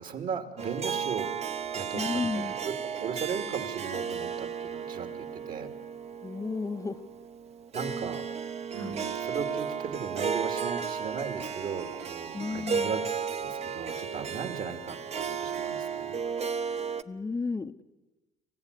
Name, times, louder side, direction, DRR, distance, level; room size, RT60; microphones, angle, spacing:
voice 1, 0.0-1.4 1.7-5.7 7.7-8.2 8.7-16.2, right 6 dB, 55° right, 6 dB, 2.9 m, -37 dB
Harp, 0.6-17.0, right 6 dB, 40° right, 1.0 m, -34 dB
voice 2, 1.9-2.5 6.2-7.0 8.7-9.0 12.3-12.9 17.1-17.8, left 4 dB, 20° left, 8 dB, 0.8 m, -33 dB
27.0 x 15.5 x 9.8 m, 1.2 s
cardioid pair, 110°, 17 cm